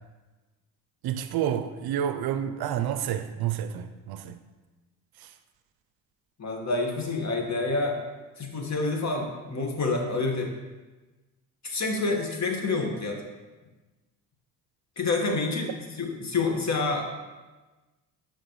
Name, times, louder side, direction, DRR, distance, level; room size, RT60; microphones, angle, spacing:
voice 1, 1.0-4.4 5.2-5.3, right 10 dB, 60° right, 0.6 m, -29 dB
voice 2, 6.4-8.0 8.4-10.5 11.6-13.2 15.0-15.7 16.0-17.0, left 3 dB, 40° left, 1.8 m, -28 dB
12.5 x 4.4 x 3.2 m
hypercardioid pair, 55°, 43 cm